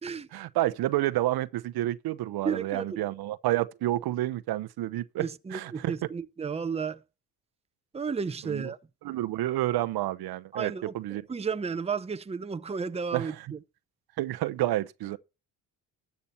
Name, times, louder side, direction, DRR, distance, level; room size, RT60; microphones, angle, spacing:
voice 1, 0.3-5.9 8.4-8.7 9.0-11.2 13.1-13.5 14.2-15.2, right 15 dB, 75° right, 0.8 m, -29 dB
voice 2, 2.4-3.1 5.2-7.0 7.9-8.8 10.5-13.6, right 5 dB, 15° right, 0.7 m, -33 dB
13.0 x 6.9 x 4.4 m
supercardioid pair, 70°, 38 cm